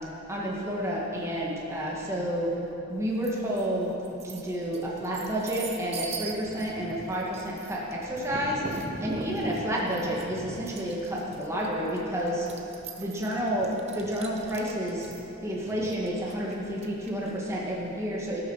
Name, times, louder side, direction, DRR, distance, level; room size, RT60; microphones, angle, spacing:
voice 1, 0.3-2.5 2.9-3.9 4.2-12.5 13.0-15.1 15.4-18.4, equal, 15° right, -5 dB, 1.8 m, -30 dB
sound 1, 3.2-3.7 4.0-17.3, right 3 dB, 30° right, 0.8 m, -41 dB
18.0 x 6.7 x 5.7 m, 2.9 s
head